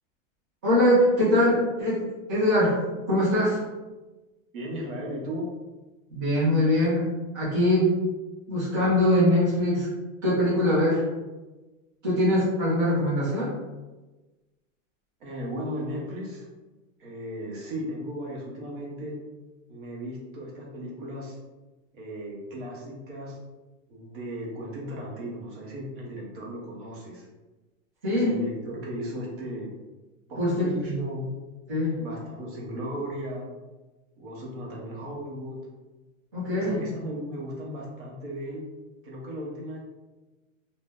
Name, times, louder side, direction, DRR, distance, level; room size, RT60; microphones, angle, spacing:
voice 1, 0.6-2.0 2.3-2.8 3.1-3.6 6.1-7.1 7.3-8.0 8.5-9.9 10.2-11.0 12.0-13.5 28.0-28.3 30.4-31.0 31.7-32.0 36.3-36.8, left 1 dB, 20° right, -12 dB, 0.4 m, -22 dB
voice 2, 4.5-5.5 15.2-16.5 17.0-19.2 19.7-21.4 21.9-23.4 23.9-27.3 28.1-29.7 30.3-31.3 32.0-33.5 34.2-35.6 36.5-38.6 39.0-39.8, equal, 40° right, -3 dB, 0.8 m, -36 dB
2.6 x 2.1 x 3.4 m, 1.2 s
supercardioid pair, 180°, 39 cm